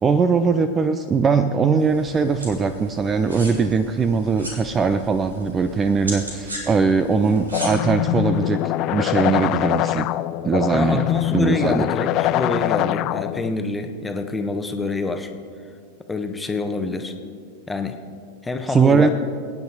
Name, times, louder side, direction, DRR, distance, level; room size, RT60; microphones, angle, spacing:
voice 1, 0.0-8.6 8.9-10.1 10.4-11.1 11.3-11.9 18.7-19.1, right 5 dB, 20° right, 10 dB, 0.5 m, -20 dB
sound 1, 1.8-7.7, equal, 80° right, 3.2 m, -37 dB
sound 2, 7.5-13.5, left 16 dB, 40° left, 0.4 m, -23 dB
voice 2, 10.7-15.3 16.1-17.1 17.7-18.0 18.4-19.1, left 3 dB, 10° left, 6 dB, 1.2 m, -26 dB
24.0 x 9.6 x 4.2 m, 2.2 s
figure-of-eight pair, 90°, 0 cm